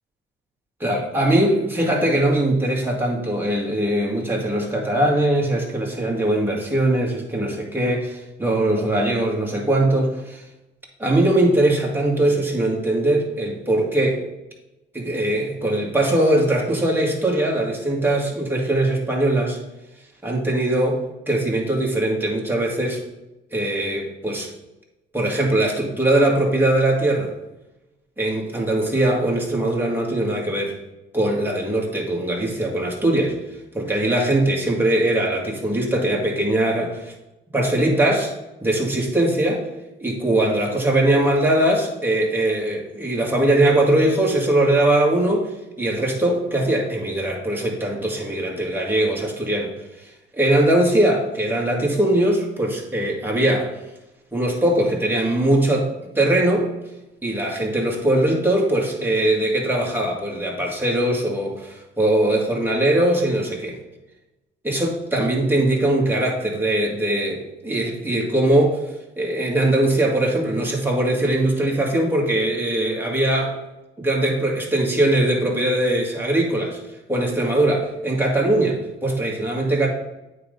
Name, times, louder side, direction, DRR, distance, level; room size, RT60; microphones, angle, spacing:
voice 1, 0.8-10.4 11.0-14.2 14.9-19.6 20.2-21.0 21.3-23.0 23.5-24.5 25.1-27.3 28.2-30.8 31.1-33.4 33.7-37.1 37.5-38.3 38.6-39.7 40.0-49.7 50.0-53.7 54.3-56.7 57.2-63.8 64.6-68.8 69.2-73.6 74.0-76.8 77.1-79.9, right 1 dB, 10° right, -2 dB, 2.1 m, -21 dB
8.7 x 4.0 x 5.3 m, 0.99 s
cardioid pair, 90°, 20 cm